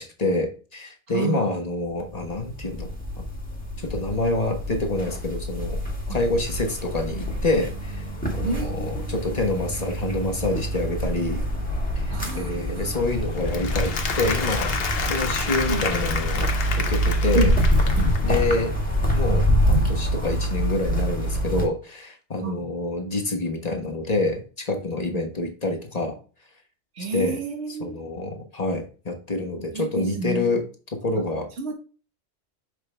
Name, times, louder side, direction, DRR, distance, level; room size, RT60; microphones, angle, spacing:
voice 1, 0.0-3.2 3.8-5.8 6.1-8.0 8.3-11.4 11.9-14.7 15.1-16.5 16.8-17.5 18.2-18.7 19.1-26.2 27.1-27.4 27.8-30.7 30.9-31.5, left 2 dB, 35° left, 1.3 m, -27 dB
voice 2, 1.1-1.4 6.1-6.2 8.4-9.1 12.1-12.9 15.7-15.8 17.3-17.6 22.4-22.7 26.9-28.0 29.7-30.4 31.6-31.7, right 2 dB, 65° right, 1.6 m, -29 dB
sound 1, 2.0-21.7, equal, 5° left, 1.7 m, -26 dB
Applause, 13.4-18.4, left 5 dB, 55° left, 1.1 m, -30 dB
6.3 x 4.8 x 3.3 m
omnidirectional pair, 1.2 m